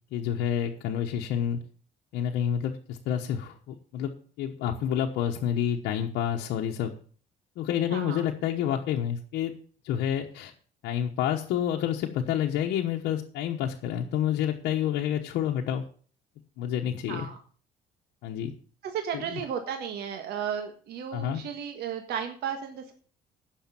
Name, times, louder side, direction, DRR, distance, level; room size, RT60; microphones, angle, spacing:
voice 1, 0.1-1.6 2.1-4.1 4.4-6.9 7.6-9.6 9.8-10.5 10.8-15.8 16.6-17.3 18.2-18.5 19.1-19.4 21.1-21.4, left 9 dB, 85° left, 1 dB, 1.1 m, -29 dB
voice 2, 7.9-8.2 17.1-17.4 18.8-22.9, right 8 dB, 75° right, 5 dB, 1.6 m, -34 dB
10.0 x 6.5 x 7.6 m, 0.44 s
cardioid pair, 110°, 17 cm